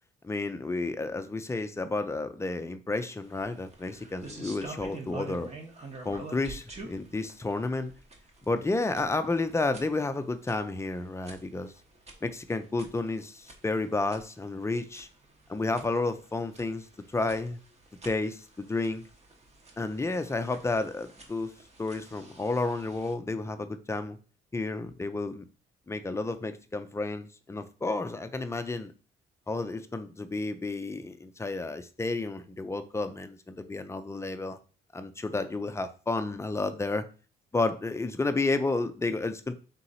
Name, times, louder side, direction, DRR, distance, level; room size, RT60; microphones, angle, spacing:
voice 1, 0.2-5.5 6.0-7.9 8.5-11.7 12.2-15.1 15.5-16.9 17.1-17.6 18.0-19.1 19.8-21.5 21.8-24.2 24.5-25.4 25.9-28.9 29.5-34.6 34.9-37.1 37.5-39.5, left 3 dB, 15° left, 9 dB, 0.5 m, -31 dB
sound 1, 3.2-23.1, right 2 dB, 35° right, 1.0 m, -48 dB
3.8 x 2.9 x 4.1 m, 0.36 s
cardioid pair, 90°, 20 cm